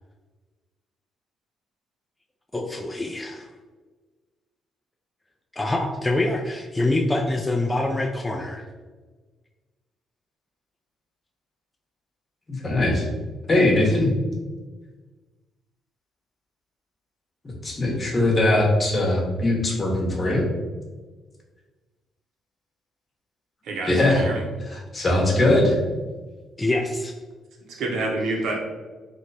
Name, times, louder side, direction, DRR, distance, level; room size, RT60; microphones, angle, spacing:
voice 1, 2.5-3.5 5.5-8.6 26.6-27.1, left 2 dB, 15° left, 0 dB, 0.4 m, -25 dB
voice 2, 12.5-13.1 13.5-14.1 17.6-20.5 23.9-24.2 24.7-25.8, left 1 dB, 30° left, -1 dB, 0.9 m, -20 dB
voice 3, 23.6-24.4 27.7-28.6, right 2 dB, 80° right, 0 dB, 0.7 m, -28 dB
3.0 x 2.1 x 4.0 m, 1.3 s
cardioid pair, 90°, 0 cm